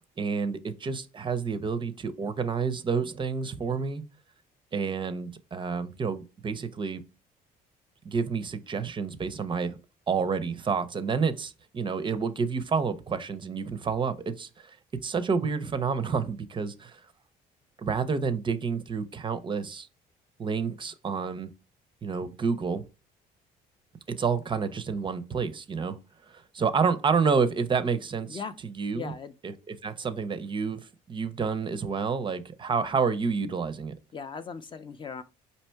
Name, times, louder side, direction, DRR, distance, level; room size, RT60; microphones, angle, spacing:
voice 1, 0.2-4.0 4.7-7.0 8.1-9.8 10.1-14.8 15.0-17.0 17.8-19.9 20.4-21.5 22.0-22.8 24.1-26.0 26.3-29.1 29.4-30.8 31.1-33.9, right 5 dB, 30° right, 0.5 m, -29 dB
voice 2, 28.9-29.3 34.1-35.2, left 5 dB, 30° left, 0.4 m, -38 dB
4.4 x 2.8 x 4.4 m
cardioid pair, 110°, 17 cm